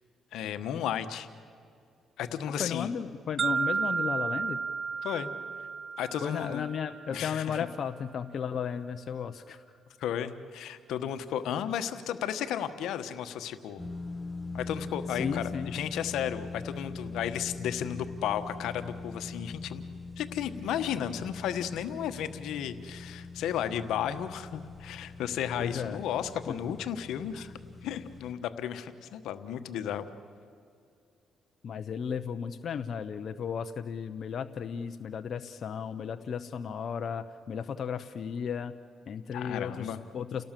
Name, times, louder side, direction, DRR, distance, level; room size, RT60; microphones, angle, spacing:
voice 1, 0.3-1.3 2.2-2.9 5.0-5.3 6.0-6.6 7.1-7.6 10.0-13.9 14.5-19.8 20.2-27.5 27.8-30.0 39.3-40.1, left 9 dB, 85° left, 10 dB, 1.2 m, -34 dB
voice 2, 2.5-4.6 6.2-9.6 15.1-15.7 25.6-26.0 26.5-26.6 27.3-27.5 31.6-38.7 39.1-40.4, left 7 dB, 55° left, 8 dB, 0.9 m, -34 dB
sound 1, 3.4-7.4, right 5 dB, 45° right, 0.8 m, -33 dB
sound 2, 13.8-28.3, left 3 dB, 15° left, 1.2 m, -42 dB
30.0 x 17.5 x 7.5 m, 2.4 s
cardioid pair, 90°, 0 cm